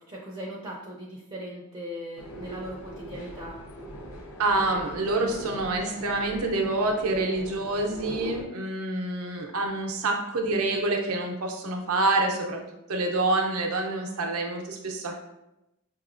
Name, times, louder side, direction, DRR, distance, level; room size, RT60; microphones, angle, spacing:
voice 1, 0.0-3.6, equal, 25° right, -4 dB, 0.5 m, -39 dB
sound 1, 2.2-8.4, equal, 80° left, 0.8 m, -41 dB
voice 2, 4.4-12.6 12.9-15.1, right 2 dB, 70° right, 2 dB, 0.6 m, -27 dB
5.4 x 2.9 x 2.5 m, 0.91 s
head